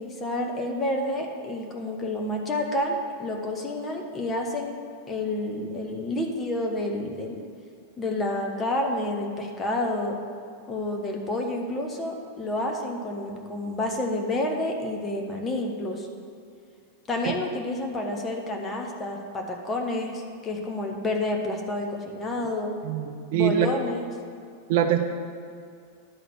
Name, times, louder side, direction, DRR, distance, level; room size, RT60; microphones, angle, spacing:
voice 1, 0.0-4.7 5.1-7.4 8.0-10.2 10.7-16.1 17.1-22.7 23.3-24.1, left 1 dB, 20° left, 1 dB, 1.2 m, -29 dB
voice 2, 22.8-23.7 24.7-25.1, right 10 dB, 50° right, 6 dB, 0.5 m, -23 dB
11.0 x 4.0 x 6.3 m, 2.3 s
figure-of-eight pair, 90°, 0 cm